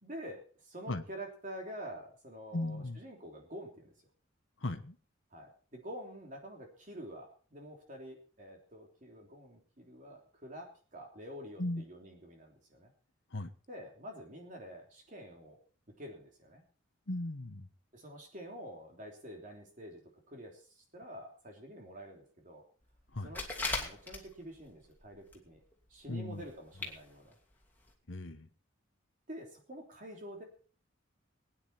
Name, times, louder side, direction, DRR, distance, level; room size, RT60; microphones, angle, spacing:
voice 1, 0.0-3.9 5.3-12.9 13.7-15.6 16.0-16.6 17.9-20.0 20.3-22.6 23.2-25.6 25.9-27.4 29.3-30.4, equal, 40° right, 1 dB, 3.4 m, -48 dB
voice 2, 2.5-3.0 4.6-5.0 11.6-11.8 13.3-13.5 17.1-17.7 23.1-23.4 26.1-26.4 28.1-28.5, left 2 dB, 70° left, 8 dB, 1.3 m, -37 dB
sound 1, 23.1-24.6 25.0-25.5 25.7-25.8 26.5-26.6 26.8-27.0 27.3-27.4 27.9-28.0, left 3 dB, 10° left, 2.7 m, -37 dB
21.5 x 9.9 x 4.3 m, 0.41 s
head